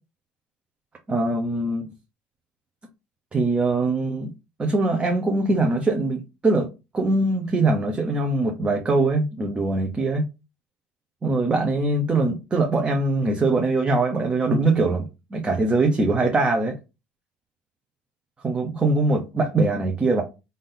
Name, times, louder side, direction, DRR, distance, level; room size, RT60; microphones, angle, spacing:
voice 1, 1.1-1.9 3.3-4.3 4.6-6.7 6.9-10.2 11.2-16.8 18.4-20.2, right 2 dB, 25° right, 0.9 m, -22 dB
3.7 x 2.7 x 3.9 m
supercardioid pair, 95°, 4 cm